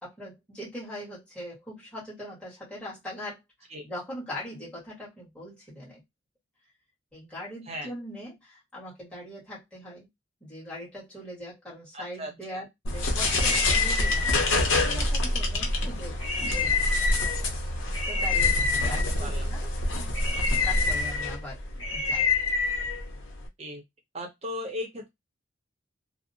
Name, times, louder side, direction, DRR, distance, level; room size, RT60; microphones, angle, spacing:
voice 1, 0.0-6.0 7.1-10.1 10.4-12.6 12.9-16.2 16.4-17.5 18.1-19.7 20.7-21.6 21.9-22.3, left 1 dB, 5° left, 1.4 m, -41 dB
voice 2, 11.9-12.6 18.8-18.9 19.2-19.5 23.6-23.8 24.1-25.1, left 1 dB, 30° right, 0.7 m, -37 dB
sound 1, 12.8-23.5, left 3 dB, 80° left, 0.7 m, -26 dB
2.6 x 2.0 x 2.6 m
head